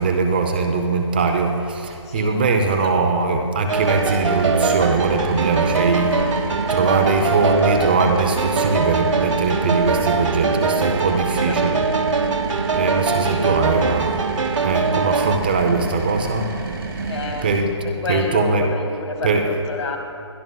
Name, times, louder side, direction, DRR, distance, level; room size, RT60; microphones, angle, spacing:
voice 1, 0.0-11.8 12.8-14.3 14.6-16.5 17.4-17.7 18.1-18.6 19.2-19.5, right 4 dB, 20° right, 4 dB, 0.4 m, -21 dB
voice 2, 2.1-3.0 10.8-11.7 13.1-13.5 17.1-17.5 17.8-20.0, left 3 dB, 70° left, 4 dB, 2.0 m, -30 dB
sound 1, 3.7-17.6, right 3 dB, 45° right, 1.4 m, -29 dB
sound 2, 3.7-15.4, right 4 dB, 90° right, 0.9 m, -22 dB
22.0 x 12.5 x 2.2 m, 2.4 s
hypercardioid pair, 170°, 16 cm